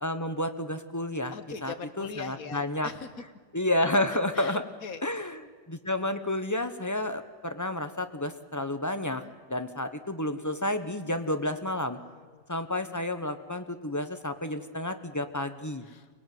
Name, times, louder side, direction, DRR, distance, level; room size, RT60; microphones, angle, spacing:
voice 1, 0.0-1.3 1.6-2.9 3.5-4.6 5.0-5.4 5.7-9.2 9.5-12.0 12.5-15.9, left 1 dB, 15° left, 9 dB, 1.0 m, -30 dB
voice 2, 1.3-3.1 4.3-5.3 9.0-9.4 12.0-12.4 15.8-16.2, left 5 dB, 60° left, 10 dB, 1.7 m, -42 dB
24.5 x 19.0 x 9.4 m, 1.5 s
omnidirectional pair, 1.7 m